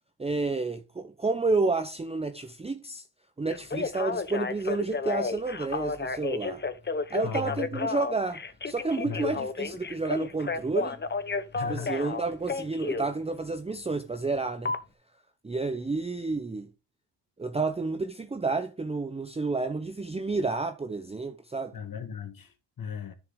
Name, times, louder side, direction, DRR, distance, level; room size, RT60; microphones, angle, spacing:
voice 1, 0.2-3.0 3.4-6.6 7.1-11.0 11.7-14.7 15.4-16.7 17.4-21.7, right 3 dB, 15° right, 0.7 m, -30 dB
Telephone, 3.5-13.1 14.7-14.8, left 4 dB, 25° left, 1.0 m, -32 dB
voice 2, 7.2-7.8 9.0-9.4 11.5-11.9 21.7-23.1, left 6 dB, 50° left, 2.0 m, -37 dB
10.0 x 6.9 x 3.7 m
cardioid pair, 95°, 44 cm